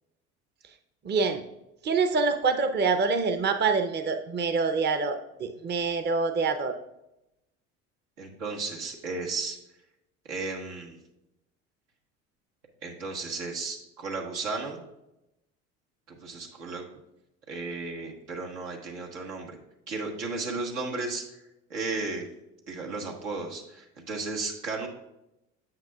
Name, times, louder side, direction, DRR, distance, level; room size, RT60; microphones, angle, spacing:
voice 1, 1.0-1.4 1.8-6.8, right 4 dB, 30° right, 8 dB, 0.7 m, -26 dB
voice 2, 8.2-9.6 10.3-11.0 12.8-14.8 16.1-16.8 17.5-19.6 19.9-21.2 21.7-22.3 22.7-24.9, right 3 dB, 85° right, 0 dB, 1.5 m, -34 dB
9.5 x 7.4 x 2.4 m, 0.87 s
hypercardioid pair, 70°, 35 cm